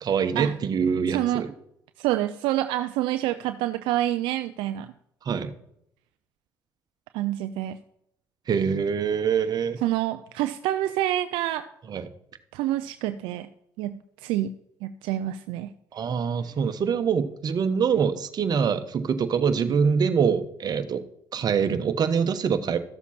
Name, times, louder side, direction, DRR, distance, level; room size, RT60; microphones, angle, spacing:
voice 1, 0.0-1.5 5.2-5.5 8.5-9.8 11.9-12.1 15.9-21.0 21.3-22.8, right 6 dB, 50° right, 9 dB, 1.2 m, -24 dB
voice 2, 1.1-1.4 2.0-4.9 7.1-7.8 9.8-11.7 12.5-13.5 13.8-14.6 14.8-15.7, right 14 dB, 80° right, 10 dB, 0.5 m, -27 dB
13.5 x 7.1 x 4.3 m, 0.75 s
supercardioid pair, 65°, 9 cm